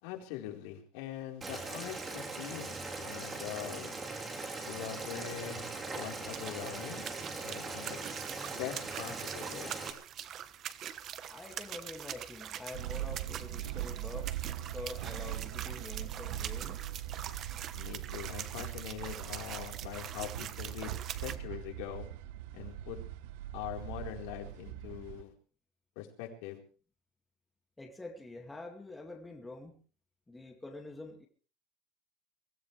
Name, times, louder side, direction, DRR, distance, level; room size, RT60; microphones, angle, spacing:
voice 1, 0.0-3.9 4.6-7.0 7.4-8.1 8.5-9.7 17.7-20.9 21.2-22.1 22.5-23.0 23.5-25.3 26.0-26.6, left 11 dB, 70° left, 4.3 m, -43 dB
Boiling, 1.4-9.9, right 3 dB, 15° right, 3.7 m, -40 dB
sound 1, 5.2-21.4, right 10 dB, 35° right, 1.2 m, -44 dB
voice 2, 11.3-14.4 14.7-16.9 27.8-29.8 30.3-31.3, left 2 dB, 10° left, 2.3 m, -46 dB
sound 2, 12.7-25.2, right 13 dB, 80° right, 1.0 m, -41 dB
23.5 x 16.5 x 3.4 m
cardioid pair, 160°, 0 cm